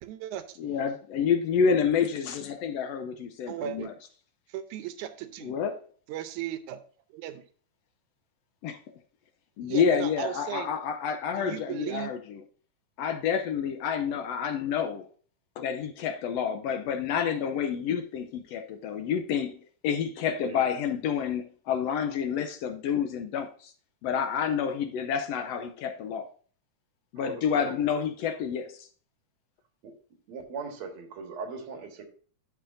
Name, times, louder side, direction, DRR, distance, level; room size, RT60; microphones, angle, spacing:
voice 1, 0.0-0.6 3.5-3.9 4.5-5.5 6.1-6.8 7.1-7.4 9.6-10.7 11.4-12.1, right 11 dB, 90° right, 2.1 m, -36 dB
voice 2, 0.6-3.9 5.4-5.8 8.6-8.8 9.6-12.4 13.0-15.1 15.6-23.7 24.0-26.3 27.1-28.9, left 7 dB, 75° left, 1.6 m, -29 dB
voice 3, 27.2-27.9 29.8-29.9 30.3-32.1, right 5 dB, 65° right, 2.7 m, -39 dB
12.5 x 5.7 x 2.6 m
omnidirectional pair, 3.4 m